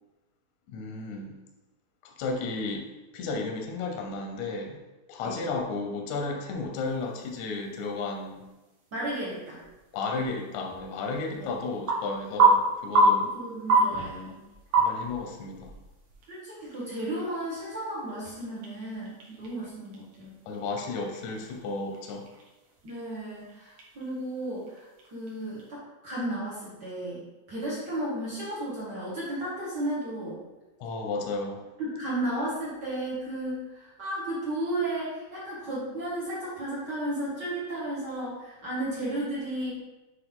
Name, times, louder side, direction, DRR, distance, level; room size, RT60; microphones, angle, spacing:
voice 1, 0.7-1.3 2.2-2.9 3.1-4.8 5.1-8.4 9.9-13.3 14.8-15.7 20.5-22.3 30.8-31.6, left 3 dB, 75° left, 2 dB, 1.8 m, -33 dB
sound 1, 6.7-25.7, right 2 dB, 70° right, 1.3 m, -31 dB
voice 2, 8.9-9.6 11.3-11.5 13.2-14.4 16.3-20.3 22.8-30.4 31.8-39.8, right 1 dB, 55° right, -8 dB, 1.2 m, -34 dB
7.5 x 3.4 x 3.7 m, 1.1 s
omnidirectional pair, 4.2 m